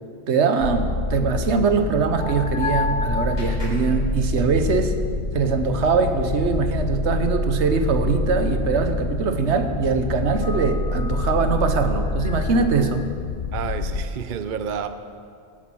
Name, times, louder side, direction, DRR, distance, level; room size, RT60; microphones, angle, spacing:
voice 1, 0.3-4.9 5.3-13.1, right 5 dB, 80° right, 8 dB, 1.2 m, -22 dB
sound 1, 0.6-14.1, left 3 dB, 60° left, 1.0 m, -26 dB
Clapping, 2.2-4.9, left 1 dB, 85° left, 4.3 m, -47 dB
voice 2, 13.5-14.9, right 7 dB, 55° right, 10 dB, 0.7 m, -29 dB
16.5 x 8.3 x 6.2 m, 2.3 s
omnidirectional pair, 1.1 m